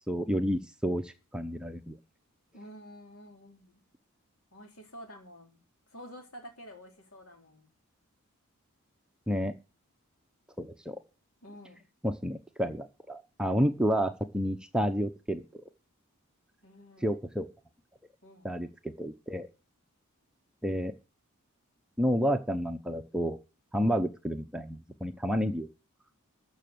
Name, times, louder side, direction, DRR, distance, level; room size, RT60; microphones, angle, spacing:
voice 1, 0.1-2.0 9.3-9.5 10.6-10.9 12.0-15.6 17.0-17.5 18.4-19.5 20.6-20.9 22.0-23.4 23.7-25.7, equal, 5° right, 6 dB, 0.8 m, -30 dB
voice 2, 2.5-3.8 4.5-7.7 11.4-11.9 16.6-17.1 18.2-18.5 23.8-24.0, equal, 70° left, 3 dB, 4.3 m, -50 dB
14.0 x 6.3 x 7.8 m, 0.32 s
head